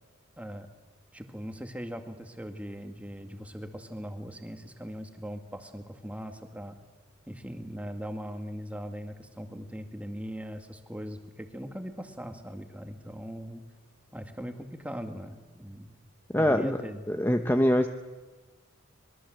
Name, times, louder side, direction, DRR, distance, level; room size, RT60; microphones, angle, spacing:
voice 1, 0.4-0.7 1.1-6.8 7.3-13.6 14.1-16.0 16.4-17.0, equal, 5° right, 6 dB, 2.0 m, -40 dB
voice 2, 16.3-16.8 17.1-17.9, equal, 10° left, 7 dB, 0.8 m, -23 dB
26.0 x 22.0 x 7.8 m, 1.3 s
head